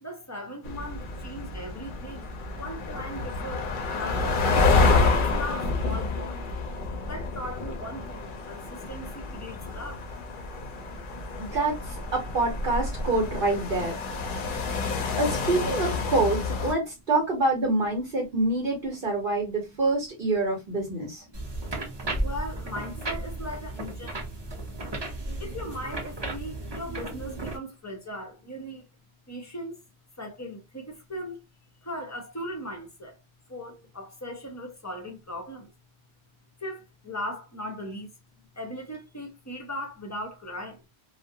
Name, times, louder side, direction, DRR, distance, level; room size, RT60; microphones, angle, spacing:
voice 1, 0.0-4.4 4.9-6.4 7.0-10.2 21.3-21.7 22.2-24.2 25.4-28.8 29.3-29.8 30.2-31.4 31.8-33.2 33.5-35.7 36.6-38.1 38.5-40.8, equal, 20° left, 0.5 m, -38 dB
sound 1, 0.6-16.7, left 3 dB, 60° left, 0.6 m, -28 dB
voice 2, 11.4-13.9 15.2-21.2, right 2 dB, 55° right, 0.9 m, -26 dB
sound 2, 21.3-27.6, right 2 dB, 30° right, 0.6 m, -34 dB
2.3 x 2.0 x 2.7 m
omnidirectional pair, 1.1 m